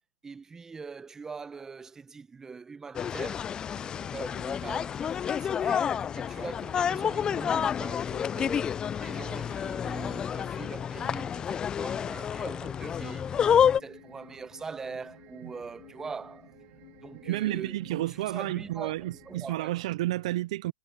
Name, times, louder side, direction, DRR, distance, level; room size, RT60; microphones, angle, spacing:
voice 1, 0.2-3.5 3.8-13.3 13.6-16.5 17.0-19.7, right 5 dB, 15° right, 0.8 m, -43 dB
sound 1, 2.9-13.8, left 8 dB, 20° left, 0.4 m, -29 dB
sound 2, 3.7-19.5, left 19 dB, 60° left, 2.2 m, -56 dB
sound 3, 13.0-19.5, right 22 dB, 45° right, 1.6 m, -56 dB
voice 2, 17.2-20.7, right 16 dB, 65° right, 0.5 m, -31 dB
hypercardioid pair, 120°, 4 cm